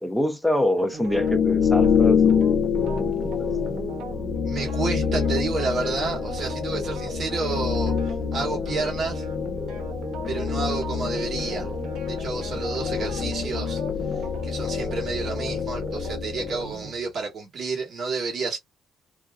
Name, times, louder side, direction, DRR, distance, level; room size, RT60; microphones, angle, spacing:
voice 1, 0.0-2.5 3.0-3.3, left 1 dB, ahead, 0.7 m, -25 dB
sound 1, 0.8-16.9, right 3 dB, 85° right, 0.8 m, -38 dB
sound 2, 1.0-16.8, left 6 dB, 70° left, 0.8 m, -26 dB
voice 2, 4.4-9.2 10.3-11.7 12.1-13.8 14.4-18.6, right 4 dB, 50° right, 1.3 m, -30 dB
2.7 x 2.2 x 2.3 m
cardioid pair, 90°, 0 cm